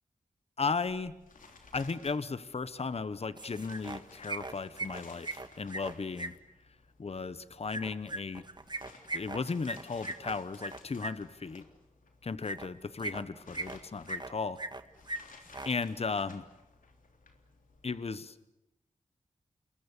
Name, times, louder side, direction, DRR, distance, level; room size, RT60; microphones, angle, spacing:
voice 1, 0.6-1.1 1.7-6.3 7.0-8.4 9.1-11.6 12.2-14.6 15.6-16.4 17.8-18.3, left 4 dB, 50° left, 14 dB, 1.1 m, -35 dB
sound 1, 0.8-18.1, left 4 dB, 90° left, 3.4 m, -58 dB
sound 2, 3.4-4.0 4.3-6.3 7.7-11.1 12.4-12.7 13.0-13.8 14.1-14.8 15.1-15.2 15.5-15.7, right 2 dB, 35° right, 1.7 m, -38 dB
29.0 x 21.5 x 8.4 m, 0.90 s
wide cardioid pair, 65°, 13 cm